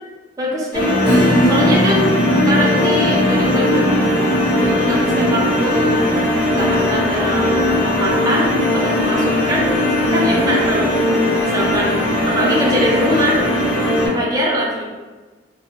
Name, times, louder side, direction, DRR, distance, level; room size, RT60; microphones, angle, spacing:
voice 1, 0.4-1.0 1.5-2.1 2.5-3.9 4.5-6.1 6.5-10.9 11.4-13.4 14.0-14.9, equal, 20° right, -4 dB, 0.4 m, -22 dB
sound 1, 0.7-14.1, left 1 dB, 75° left, 0.8 m, -18 dB
Acoustic guitar / Strum, 1.0-8.2, equal, 45° left, 1.2 m, -24 dB
2.5 x 2.0 x 2.9 m, 1.3 s
head